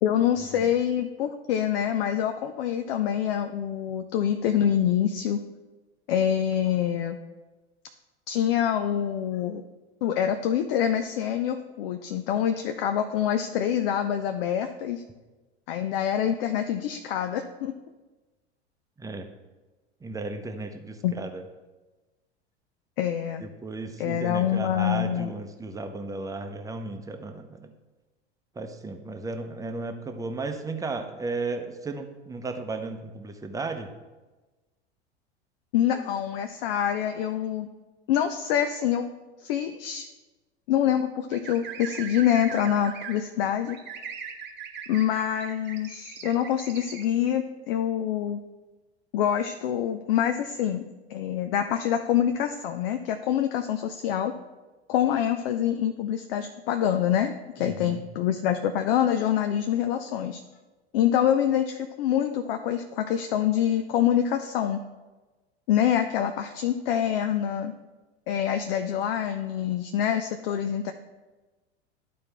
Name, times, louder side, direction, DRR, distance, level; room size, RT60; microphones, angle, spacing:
voice 1, 0.0-5.4 6.1-7.2 8.3-9.6 10.0-15.0 15.7-17.7 21.0-21.1 23.0-23.4 24.0-25.3 35.7-37.7 38.1-39.1 39.4-40.1 40.7-43.8 44.9-48.4 49.1-54.3 54.9-60.4 60.9-64.8 65.7-67.7 68.3-70.9, left 10 dB, 60° left, 7 dB, 0.6 m, -26 dB
voice 2, 20.0-21.4 23.4-27.7 28.6-33.9 57.6-58.0, right 3 dB, 10° right, 6 dB, 0.7 m, -34 dB
sound 1, 41.3-43.2 43.7-47.0, right 7 dB, 30° right, 1.1 m, -39 dB
12.0 x 4.2 x 3.4 m, 1.2 s
figure-of-eight pair, 85°, 33 cm